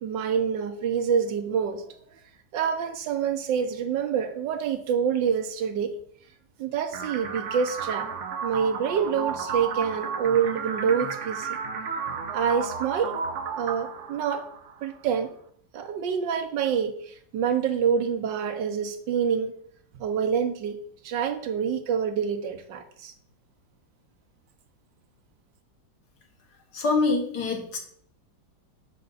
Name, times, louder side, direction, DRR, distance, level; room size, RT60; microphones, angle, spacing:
voice 1, 0.0-1.8 2.5-5.9 6.6-8.1 8.4-11.6 12.3-13.1 13.6-14.4 14.8-15.3 15.7-19.5 20.0-20.8 21.0-23.1, right 7 dB, 75° right, 8 dB, 1.4 m, -26 dB
sound 1, 6.9-14.9, right 6 dB, 55° right, 0.8 m, -33 dB
voice 2, 26.7-27.8, left 3 dB, 60° left, 2 dB, 1.8 m, -25 dB
6.7 x 6.5 x 4.0 m, 0.63 s
omnidirectional pair, 2.0 m